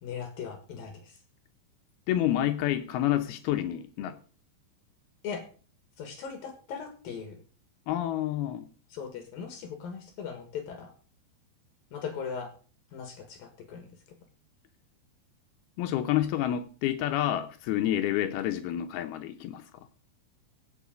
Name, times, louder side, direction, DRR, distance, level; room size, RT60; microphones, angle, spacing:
voice 1, 0.0-1.2 5.2-5.4 6.0-7.4 8.9-10.9 11.9-12.5 12.9-13.9, left 6 dB, 60° left, 3.1 m, -39 dB
voice 2, 2.1-4.2 7.9-8.7 15.8-19.7, left 12 dB, 75° left, 2.4 m, -28 dB
16.5 x 6.7 x 5.1 m
omnidirectional pair, 5.1 m